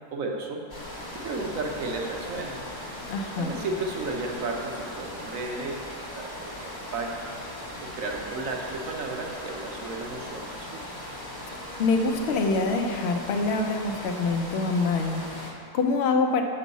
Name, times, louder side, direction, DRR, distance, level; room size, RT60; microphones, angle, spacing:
voice 1, 0.1-0.6 1.1-2.6 3.4-7.3 7.8-10.8, right 3 dB, 65° right, 1 dB, 1.0 m, -33 dB
sound 1, 0.7-15.5, left 1 dB, 15° left, 0.9 m, -39 dB
voice 2, 3.1-3.5 11.8-16.4, left 3 dB, 70° left, 3 dB, 0.6 m, -25 dB
7.2 x 5.4 x 4.0 m, 2.2 s
omnidirectional pair, 1.7 m